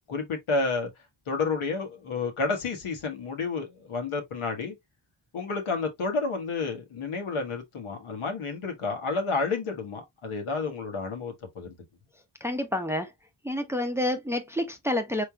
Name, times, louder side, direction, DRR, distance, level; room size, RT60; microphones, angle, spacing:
voice 1, 0.1-0.9 1.3-4.8 5.3-11.8, left 4 dB, 75° left, 1.4 m, -30 dB
voice 2, 12.4-13.1 13.4-15.2, left 1 dB, 5° right, 0.7 m, -28 dB
4.3 x 3.2 x 2.2 m
cardioid pair, 60°, 50 cm